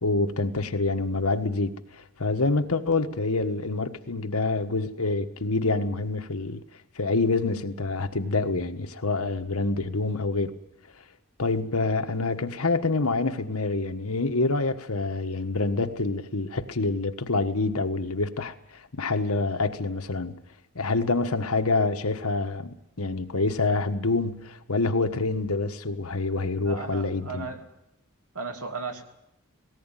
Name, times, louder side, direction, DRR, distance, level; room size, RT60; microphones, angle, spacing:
voice 1, 0.0-6.6 7.0-10.5 11.4-18.5 19.0-20.3 20.7-27.5, left 3 dB, 75° left, 1.4 m, -26 dB
voice 2, 26.6-27.7 28.3-29.0, right 4 dB, 90° right, 2.7 m, -35 dB
18.5 x 18.0 x 9.2 m
head